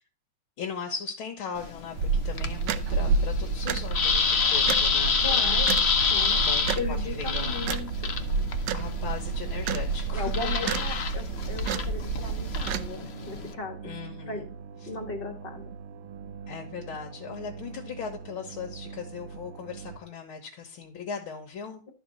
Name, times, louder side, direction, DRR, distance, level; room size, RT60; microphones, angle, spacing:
voice 1, 0.6-5.7 6.4-7.6 8.7-11.1 13.8-14.5 14.8-14.9 16.5-21.8, left 6 dB, 80° left, 2 dB, 2.1 m, -38 dB
sound 1, 1.6-13.5, left 5 dB, 50° left, 0.8 m, -28 dB
sound 2, 2.0-12.9, right 4 dB, 70° right, 1.2 m, -29 dB
voice 2, 5.2-5.8 6.1-6.4 6.8-8.2 10.1-13.9 14.3-14.4 14.8-15.6, left 4 dB, 30° left, 3 dB, 1.7 m, -36 dB
sound 3, 7.1-20.0, right 6 dB, 85° right, 1.7 m, -43 dB
12.5 x 4.4 x 5.4 m, 0.36 s
omnidirectional pair, 2.2 m